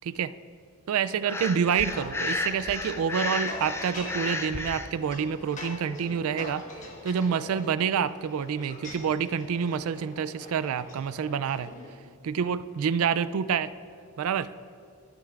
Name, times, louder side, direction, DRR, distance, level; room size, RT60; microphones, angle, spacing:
voice 1, 0.9-6.6 7.0-11.7 12.2-13.7 14.2-14.5, right 7 dB, 80° right, 15 dB, 0.3 m, -27 dB
sound 1, 1.1-7.2, left 4 dB, 80° left, 0.7 m, -53 dB
Breathing, 1.2-4.9, left 2 dB, 10° left, 0.3 m, -32 dB
sound 2, 1.8-11.9, left 1 dB, 35° left, 1.3 m, -43 dB
18.5 x 7.7 x 2.4 m, 2.4 s
head